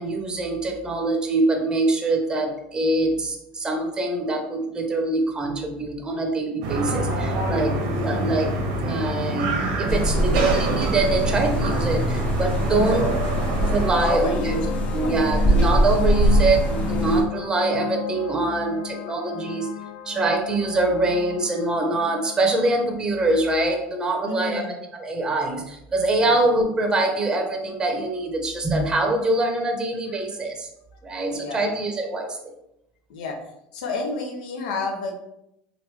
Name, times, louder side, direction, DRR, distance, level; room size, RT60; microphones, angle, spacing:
voice 1, 0.0-8.5 8.8-13.1 13.6-14.6 14.9-19.7 20.0-30.7 31.0-32.4, right 2 dB, 15° right, 2 dB, 0.6 m, -24 dB
sound 1, 6.6-13.9, right 2 dB, 75° right, 0.7 m, -26 dB
voice 2, 7.8-8.1 12.7-13.0 14.0-14.7 15.0-15.1 24.2-24.8 26.2-26.4 31.1-31.7 33.1-33.4 33.7-35.2, left 3 dB, 85° left, 2 dB, 0.6 m, -30 dB
sound 2, 9.9-17.2, right 1 dB, 25° left, 0.7 m, -23 dB
sound 3, 12.7-23.0, left 11 dB, 50° left, 0.3 m, -34 dB
3.0 x 2.5 x 3.3 m, 0.82 s
supercardioid pair, 120°, 4 cm